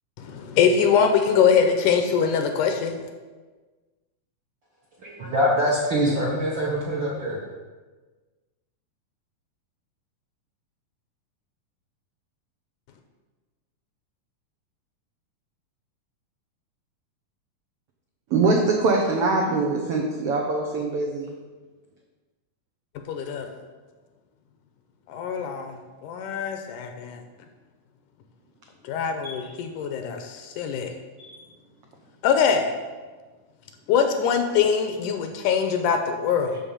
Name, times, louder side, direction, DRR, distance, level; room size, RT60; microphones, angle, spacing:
voice 1, 0.2-3.0 23.1-23.5 25.1-25.7 26.0-27.2 28.8-30.9 32.2-32.7 33.9-36.6, left 7 dB, 80° left, 5 dB, 2.0 m, -23 dB
voice 2, 5.0-7.5, equal, 60° right, -4 dB, 1.3 m, -24 dB
voice 3, 18.3-21.4 29.2-29.5 31.2-31.4, right 3 dB, 80° right, 0 dB, 1.3 m, -23 dB
11.0 x 3.7 x 7.1 m, 1.3 s
omnidirectional pair, 3.9 m